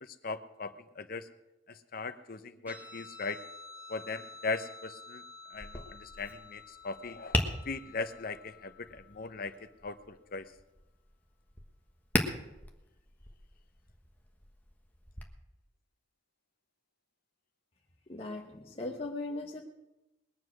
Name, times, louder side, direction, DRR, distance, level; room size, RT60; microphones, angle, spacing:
voice 1, 0.0-1.3 1.7-3.4 3.9-5.2 5.5-10.5, left 4 dB, 50° left, 10 dB, 0.9 m, -39 dB
Guitar, 2.7-9.6, left 4 dB, 10° right, 2.6 m, -51 dB
Tap, 5.5-15.2, left 1 dB, 10° left, 1.3 m, -39 dB
voice 2, 18.1-19.6, left 2 dB, 30° left, -2 dB, 1.2 m, -38 dB
21.0 x 7.4 x 6.4 m, 0.98 s
head